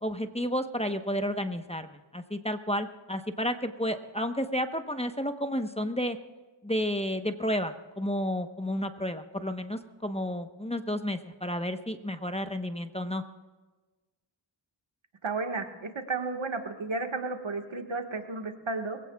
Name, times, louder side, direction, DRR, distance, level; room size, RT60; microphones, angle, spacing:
voice 1, 0.0-6.2 6.6-13.2, equal, 15° left, 7 dB, 1.0 m, -31 dB
voice 2, 15.2-19.0, right 3 dB, 70° right, 4 dB, 1.7 m, -33 dB
22.5 x 16.5 x 2.4 m, 1.2 s
cardioid pair, 45°, 49 cm